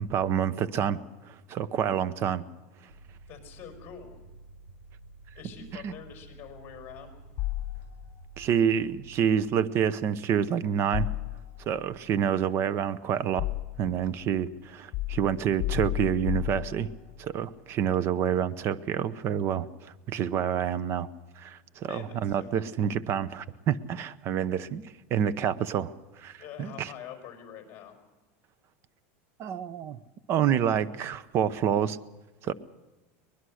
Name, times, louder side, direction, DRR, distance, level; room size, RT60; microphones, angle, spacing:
voice 1, 0.0-2.4 5.7-5.9 8.4-11.1 11.7-13.5 13.8-16.9 17.2-21.1 21.4-24.8 25.1-26.9 29.4-30.0 30.3-32.0 32.4-32.5, right 8 dB, 35° right, 17 dB, 0.8 m, -28 dB
sound 1, 2.9-9.6, right 3 dB, 70° right, 7.3 m, -51 dB
voice 2, 3.3-4.2 5.3-7.2 21.9-22.9 26.4-28.0 32.4-32.5, left 8 dB, 30° left, 3 dB, 5.1 m, -45 dB
sound 2, 7.4-8.3 10.9-11.8 12.7-14.0 14.9-17.2, left 18 dB, 45° left, 3.1 m, -33 dB
23.0 x 20.5 x 6.4 m, 1.1 s
supercardioid pair, 150°, 7 cm